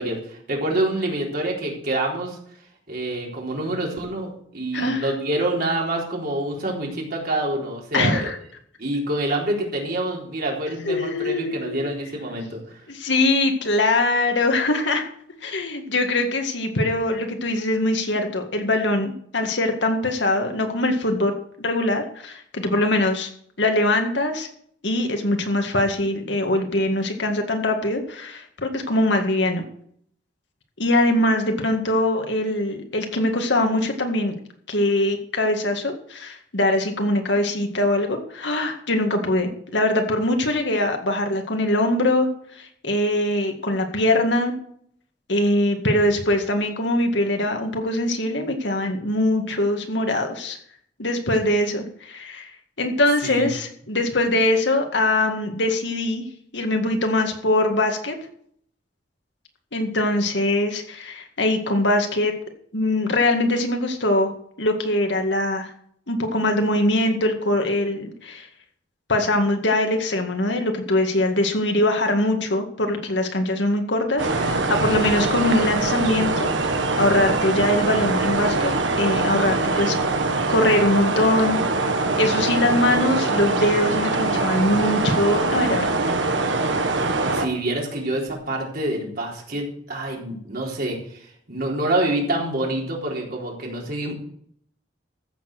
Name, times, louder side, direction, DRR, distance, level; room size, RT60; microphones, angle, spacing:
voice 1, 0.0-2.4 2.9-8.3 8.8-12.8 53.2-53.5 87.0-94.1, right 1 dB, 55° right, -1 dB, 3.9 m, -27 dB
voice 2, 4.7-5.1 7.9-8.4 10.9-11.8 12.9-15.1 15.4-21.3 21.6-23.3 23.6-24.5 24.8-29.7 30.8-34.3 34.7-42.3 42.6-44.5 45.3-50.6 51.0-52.5 52.8-56.2 56.5-58.2 59.7-62.4 62.7-64.3 64.6-65.7 66.1-68.5 69.1-78.7 79.0-80.0 80.5-81.6 82.2-86.0, left 1 dB, 70° left, 4 dB, 2.0 m, -22 dB
sound 1, 74.2-87.5, right 3 dB, 85° right, 1.6 m, -23 dB
14.0 x 7.4 x 6.1 m, 0.65 s
head